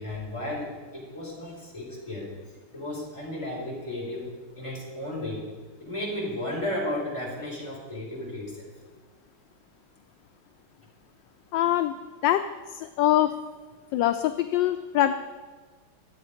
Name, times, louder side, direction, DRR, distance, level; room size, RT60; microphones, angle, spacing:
voice 1, 0.0-2.3 2.7-5.5 5.8-8.7, left 1 dB, 15° left, -4 dB, 5.0 m, -34 dB
voice 2, 11.5-11.9 12.2-12.4 12.7-13.3 13.9-15.1, left 13 dB, 75° left, 9 dB, 1.1 m, -23 dB
23.5 x 8.5 x 5.1 m, 1.5 s
omnidirectional pair, 2.3 m